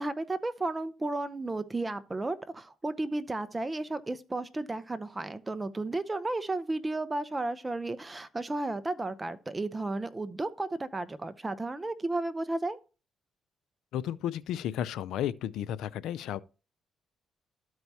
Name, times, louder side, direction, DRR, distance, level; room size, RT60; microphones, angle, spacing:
voice 1, 0.0-12.8, right 2 dB, 20° right, 0.7 m, -33 dB
voice 2, 13.9-16.4, left 11 dB, 85° left, 0.4 m, -33 dB
13.0 x 4.6 x 2.7 m
cardioid pair, 90°, 0 cm